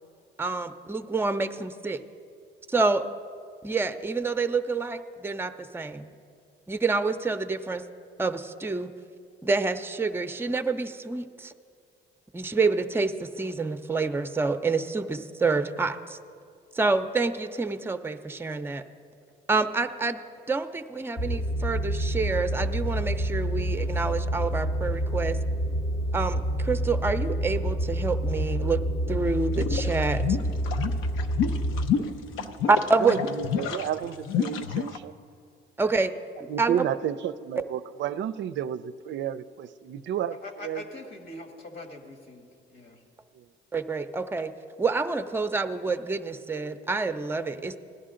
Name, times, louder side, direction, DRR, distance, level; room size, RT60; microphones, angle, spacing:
voice 1, 0.4-2.0 2.7-3.0 3.6-6.1 6.7-7.8 8.2-8.9 9.4-11.5 12.3-16.2 16.7-18.8 19.5-20.2 20.5-25.4 26.1-28.8 29.1-30.4 32.7-33.3 35.8-36.1 36.4-36.9 43.7-44.5 44.8-47.8, right 3 dB, 10° right, 10 dB, 0.5 m, -27 dB
sound 1, 21.2-31.9, right 1 dB, 45° left, 0.8 m, -28 dB
sound 2, 29.5-35.0, left 8 dB, 90° left, 0.6 m, -29 dB
voice 2, 32.0-32.6 33.0-35.1 36.5-40.8 43.4-43.5, right 10 dB, 70° right, 14 dB, 0.4 m, -32 dB
voice 3, 40.4-43.0, left 2 dB, 70° left, 3 dB, 1.6 m, -43 dB
16.5 x 11.0 x 3.8 m, 2.4 s
cardioid pair, 90°, 20 cm